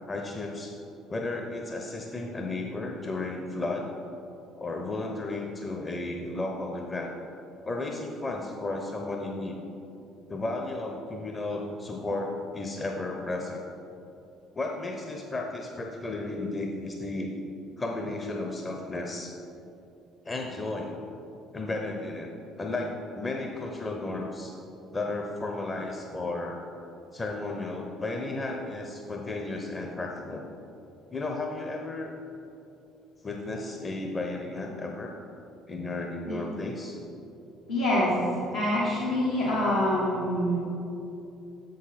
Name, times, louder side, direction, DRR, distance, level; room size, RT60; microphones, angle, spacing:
voice 1, 0.1-0.7 1.1-3.9 4.6-7.1 7.6-9.6 10.3-13.6 14.5-17.3 17.8-19.3 20.2-20.9 21.5-22.3 22.6-24.5 24.9-26.6 27.1-30.5 31.1-32.2 33.2-35.1 35.7-37.0, left 2 dB, 25° left, 2 dB, 0.7 m, -33 dB
voice 2, 37.7-40.6, left 1 dB, 80° left, -9 dB, 1.1 m, -26 dB
7.2 x 6.4 x 4.2 m, 2.8 s
figure-of-eight pair, 50°, 0 cm